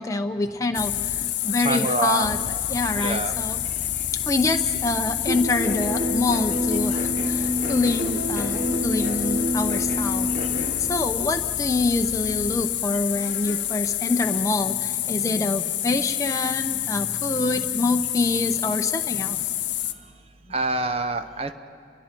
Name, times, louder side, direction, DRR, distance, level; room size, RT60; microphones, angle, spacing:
voice 1, 0.0-2.4 2.7-3.6 4.3-10.3 10.9-19.4, left 2 dB, 20° left, 4 dB, 0.7 m, -26 dB
sound 1, 0.7-19.9, left 12 dB, 75° left, 0.9 m, -28 dB
voice 2, 1.6-2.3 3.0-3.3 6.9-7.0 12.8-13.0 20.5-21.5, right 2 dB, 35° right, 10 dB, 0.8 m, -26 dB
sound 2, 5.3-10.7, equal, 50° right, 3.3 m, -27 dB
30.0 x 23.5 x 4.5 m, 2.5 s
head